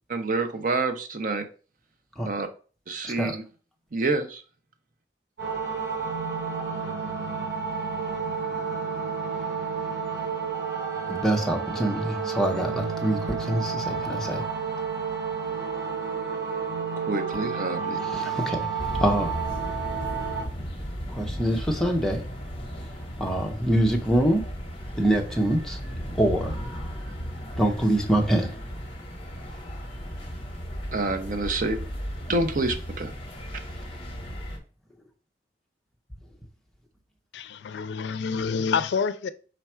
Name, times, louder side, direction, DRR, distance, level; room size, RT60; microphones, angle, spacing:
voice 1, 0.1-1.4 2.3-2.5 2.9-3.4 3.9-4.4 17.1-18.0 30.9-31.8 32.3-33.1, right 2 dB, 50° right, 0.6 m, -27 dB
voice 2, 3.0-3.3 11.1-14.4 18.0-19.4 21.1-22.2 23.2-24.4 25.0-25.8 26.1-26.6 27.6-28.6, right 1 dB, 5° left, 0.7 m, -25 dB
sound 1, 5.4-20.4, right 5 dB, 85° right, 2.2 m, -31 dB
sound 2, 18.8-34.6, equal, 30° left, 0.9 m, -35 dB
voice 3, 37.3-39.3, left 5 dB, 80° left, 0.4 m, -27 dB
5.1 x 2.3 x 4.3 m
head